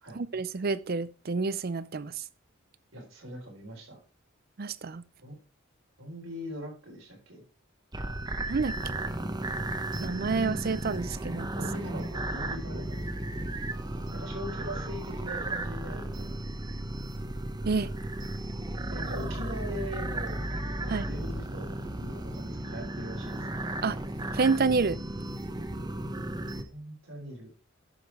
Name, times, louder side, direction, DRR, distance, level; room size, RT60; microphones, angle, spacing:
voice 1, 0.1-2.1 4.6-5.0 8.5-8.7 10.0-11.5 17.7-17.9 20.9-21.1 23.8-24.0 24.3-25.0, right 4 dB, 50° right, 0.5 m, -28 dB
voice 2, 2.9-4.0 5.2-5.3 6.0-7.4 8.7-8.9 11.3-13.0 14.1-16.4 18.9-20.5 20.8-23.6 26.7-27.5, equal, 85° right, 4.1 m, -41 dB
sound 1, 7.9-26.6, right 1 dB, 20° right, 0.9 m, -34 dB
11.5 x 5.1 x 4.7 m
head